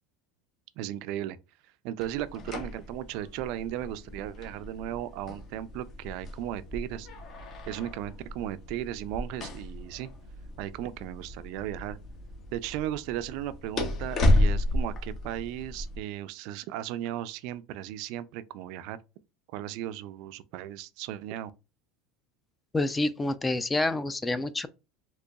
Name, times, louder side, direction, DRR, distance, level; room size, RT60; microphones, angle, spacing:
voice 1, 0.8-1.4 1.8-7.1 7.7-10.1 10.6-12.0 12.5-19.0 19.5-21.5, right 12 dB, 65° right, 0.3 m, -36 dB
sound 1, 2.0-16.0, left 1 dB, 40° left, 0.9 m, -32 dB
voice 2, 22.7-24.7, left 2 dB, 15° left, 0.3 m, -28 dB
3.8 x 2.9 x 2.3 m
supercardioid pair, 115°, 0 cm